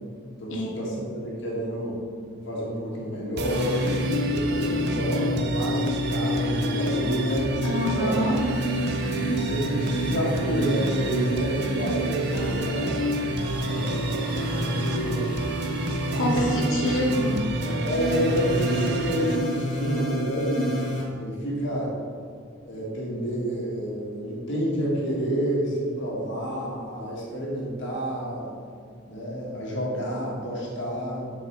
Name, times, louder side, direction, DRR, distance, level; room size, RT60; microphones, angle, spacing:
voice 1, 0.4-2.0 2.5-3.8 4.3-8.1 9.1-13.0 13.6-15.3 16.1-16.7 17.7-20.7 21.2-21.9 22.6-28.5 29.0-31.2, equal, 60° left, -4 dB, 1.8 m, -29 dB
sound 1, 3.4-21.0, left 1 dB, 40° left, 1.7 m, -29 dB
sound 2, 3.4-19.4, right 3 dB, 55° right, 0.5 m, -31 dB
voice 2, 7.6-8.4 16.1-17.4, equal, 85° left, -3 dB, 1.7 m, -25 dB
7.7 x 4.8 x 4.6 m, 2.1 s
head